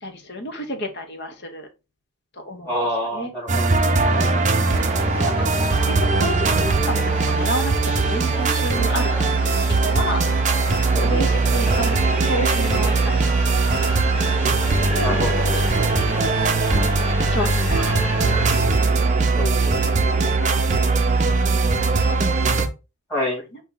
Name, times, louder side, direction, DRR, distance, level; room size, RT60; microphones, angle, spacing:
voice 1, 0.0-1.7 2.3-2.7 3.1-3.3 4.0-4.3 5.2-10.2 10.9-13.2 13.8-14.3 14.8-15.7 16.2-17.0 17.3-18.1 19.6-22.4 23.5-23.6, equal, 50° left, 5 dB, 0.9 m, -31 dB
voice 2, 2.6-3.8 4.1-4.3 10.9-11.1 15.0-15.8 19.3-19.5 23.1-23.4, left 1 dB, 10° left, -6 dB, 2.4 m, -27 dB
sound 1, 3.5-22.7, right 3 dB, 35° right, 0.5 m, -20 dB
sound 2, 4.7-18.6, right 2 dB, 5° right, 1.3 m, -31 dB
4.7 x 2.7 x 3.8 m, 0.27 s
head